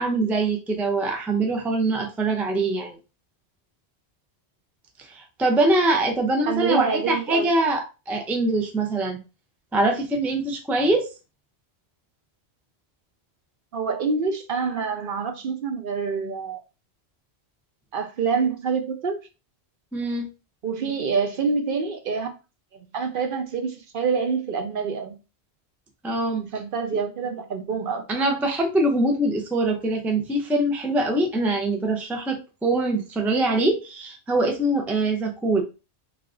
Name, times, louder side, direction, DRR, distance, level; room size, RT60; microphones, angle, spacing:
voice 1, 0.0-3.0 5.0-9.2 9.7-11.1 19.9-20.3 26.0-26.5 28.1-35.6, right 2 dB, ahead, 0.4 m, -23 dB
voice 2, 6.5-7.5 13.7-16.6 17.9-19.2 20.6-22.3 22.9-25.1 26.3-28.0, right 5 dB, 60° right, 0.7 m, -26 dB
3.4 x 2.4 x 3.7 m
omnidirectional pair, 1.1 m